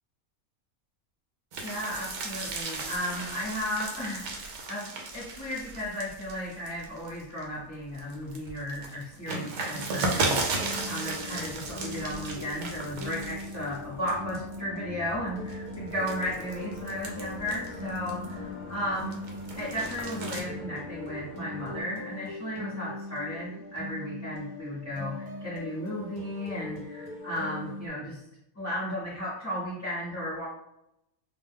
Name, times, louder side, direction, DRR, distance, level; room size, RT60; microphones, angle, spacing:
sound 1, 1.5-7.4 7.9-13.8 14.1-14.6 15.1-18.4 18.8-20.4, right 3 dB, 65° right, 0.8 m, -35 dB
voice 1, 1.6-4.3 4.7-19.3 19.6-28.2 28.5-30.5, left 1 dB, 15° left, -11 dB, 0.7 m, -35 dB
sound 2, 9.1-21.8, left 3 dB, 80° left, 0.4 m, -46 dB
sound 3, 9.7-27.9, left 2 dB, 50° right, 0.4 m, -41 dB
2.6 x 2.2 x 3.4 m, 0.82 s
omnidirectional pair, 1.5 m